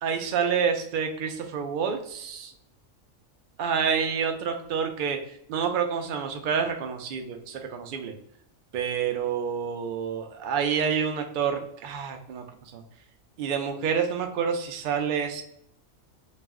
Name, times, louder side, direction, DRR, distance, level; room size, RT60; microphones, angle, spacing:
voice 1, 0.0-2.5 3.6-5.2 5.5-8.1 8.7-12.8 13.4-15.4, right 7 dB, 85° right, 4 dB, 0.4 m, -28 dB
2.4 x 2.1 x 3.4 m, 0.71 s
omnidirectional pair, 1.4 m